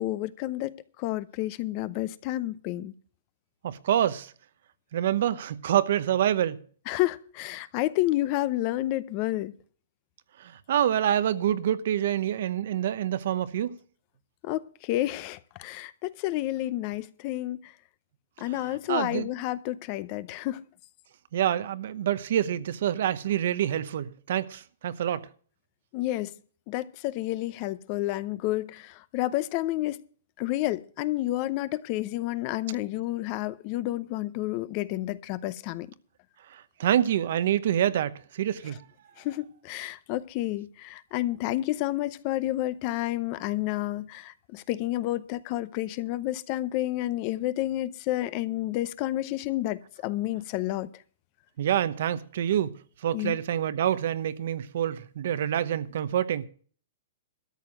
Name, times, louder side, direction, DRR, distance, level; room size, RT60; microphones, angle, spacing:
voice 1, 0.0-2.9 6.9-9.5 14.4-17.7 18.4-20.6 25.9-26.3 26.7-30.0 30.4-35.9 39.2-51.0 53.1-53.4, left 16 dB, 35° left, 0.7 m, -30 dB
voice 2, 3.6-4.3 4.9-6.6 10.4-13.7 18.9-19.3 21.3-25.3 36.5-38.8 51.6-52.8 53.0-56.5, right 10 dB, 60° right, 0.9 m, -27 dB
13.0 x 6.9 x 7.6 m
hypercardioid pair, 160°, 0 cm